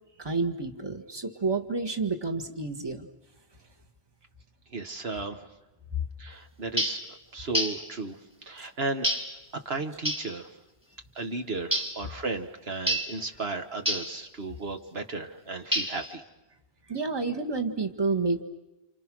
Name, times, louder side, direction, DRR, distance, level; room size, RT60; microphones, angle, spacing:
voice 1, 0.2-3.1 8.6-8.7 16.9-18.4, right 3 dB, 25° right, 4 dB, 1.8 m, -29 dB
voice 2, 4.7-5.4 6.2-8.2 8.4-9.1 9.6-10.5 11.1-16.2, right 3 dB, 75° right, 6 dB, 1.8 m, -34 dB
sound 1, 6.8-7.1 7.5-7.9 9.0-9.4 10.1-10.3 11.7-12.0 12.9-13.2 13.9-14.2 15.7-16.1, equal, 5° right, 2.8 m, -28 dB
29.5 x 28.0 x 6.3 m, 1.0 s
omnidirectional pair, 1.0 m